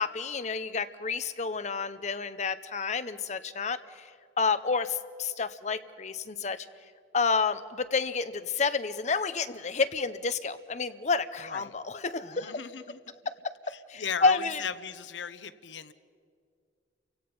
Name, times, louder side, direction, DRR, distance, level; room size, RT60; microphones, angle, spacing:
voice 1, 0.0-4.1 4.4-6.7 7.1-12.6 13.3-13.5 13.9-14.6, left 4 dB, 40° left, 12 dB, 0.7 m, -30 dB
voice 2, 11.4-11.8 12.3-13.0 13.7-15.9, left 6 dB, 80° left, 13 dB, 0.8 m, -37 dB
30.0 x 16.5 x 5.4 m, 2.2 s
head